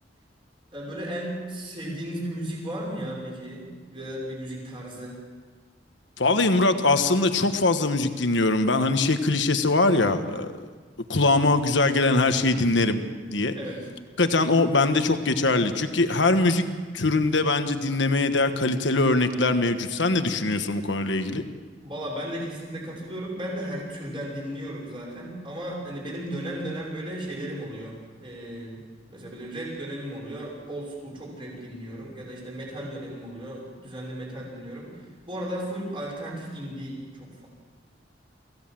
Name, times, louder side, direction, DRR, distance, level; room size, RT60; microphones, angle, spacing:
voice 1, 0.7-5.2 13.5-13.9 21.8-28.8 29.1-37.5, right 1 dB, 30° right, -4 dB, 6.1 m, -35 dB
voice 2, 6.2-10.5 11.1-13.0 13.3-13.5 14.2-16.7 16.9-21.4, left 2 dB, 75° left, 8 dB, 1.4 m, -22 dB
24.5 x 16.5 x 7.6 m, 1.5 s
head